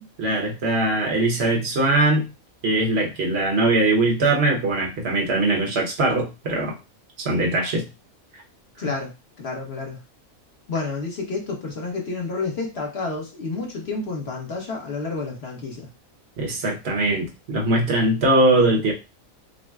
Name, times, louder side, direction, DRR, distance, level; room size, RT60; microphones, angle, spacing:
voice 1, 0.2-2.3 2.6-6.8 7.2-7.8 8.3-8.4 16.4-18.9, right 2 dB, 50° right, 0 dB, 1.1 m, -21 dB
voice 2, 8.8-9.1 9.4-10.0 10.7-15.9, left 3 dB, 50° left, 0 dB, 1.2 m, -30 dB
6.3 x 2.1 x 2.3 m, 0.28 s
omnidirectional pair, 1.5 m